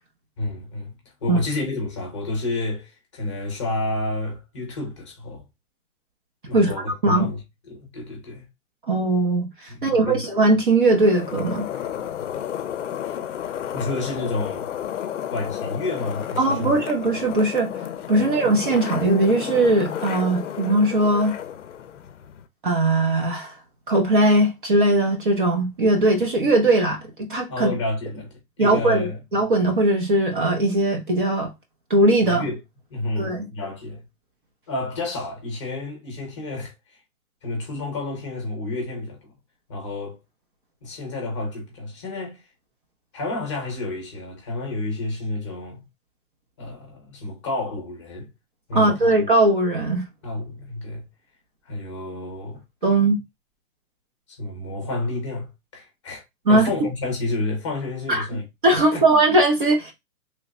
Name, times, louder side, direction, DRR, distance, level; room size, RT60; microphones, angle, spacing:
voice 1, 0.4-5.4 6.5-8.4 9.7-10.2 13.0-13.2 13.7-14.7 15.3-16.7 18.2-18.4 27.5-29.2 32.2-32.6 32.9-34.0 34.7-37.0 37.4-39.2 39.7-40.2 40.8-42.4 43.1-45.8 46.6-48.3 48.7-49.1 50.2-51.0 51.7-52.6 54.3-58.4 58.9-59.0, left 2 dB, 20° left, 0.7 m, -30 dB
voice 2, 8.9-11.7 16.4-17.7 18.1-21.3 22.6-23.5 23.9-27.0 27.3-27.7 28.6-31.5 31.9-32.4 33.2-33.5 48.7-50.1 52.8-53.2 56.5-56.7 58.1-58.3 58.6-59.9, right 2 dB, 35° right, 0.6 m, -19 dB
sound 1, 10.9-22.4, left 10 dB, 55° left, 0.5 m, -32 dB
3.2 x 2.1 x 3.6 m
hypercardioid pair, 175°, 43 cm